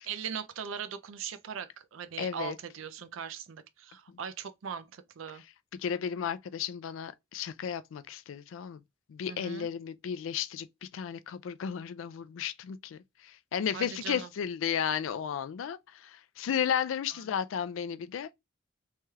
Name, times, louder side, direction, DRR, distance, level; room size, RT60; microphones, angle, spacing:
voice 1, 0.1-5.4 9.3-9.7 13.7-14.3 17.3-17.4, right 7 dB, 75° right, 0.4 m, -40 dB
voice 2, 2.2-2.6 5.7-8.8 9.1-18.3, left 8 dB, 75° left, 0.3 m, -34 dB
3.1 x 2.8 x 2.3 m
head